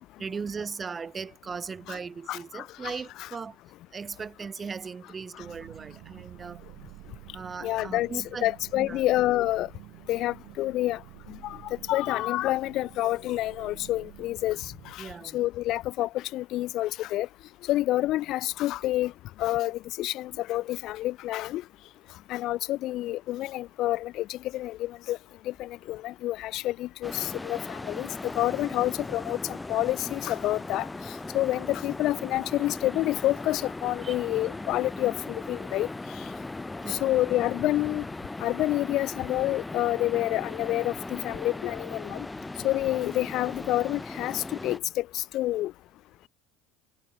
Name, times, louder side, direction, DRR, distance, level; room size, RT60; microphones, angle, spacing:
voice 1, 0.2-3.6 3.9-6.6 7.3-9.0 15.0-15.4 34.0-34.2 36.8-37.1, right 5 dB, 30° right, 0.6 m, -38 dB
voice 2, 2.3-2.9 3.2-3.3 7.6-9.7 10.1-11.0 11.3-17.3 17.7-19.1 19.4-21.6 22.3-25.2 25.5-30.9 31.3-35.9 36.9-38.0 38.4-42.3 42.6-45.7, left 15 dB, 60° left, 0.5 m, -28 dB
sound 1, 5.4-15.0, right 24 dB, 65° right, 1.4 m, -49 dB
sound 2, 27.0-44.8, left 2 dB, 15° left, 1.1 m, -38 dB
hypercardioid pair, 80°, 0 cm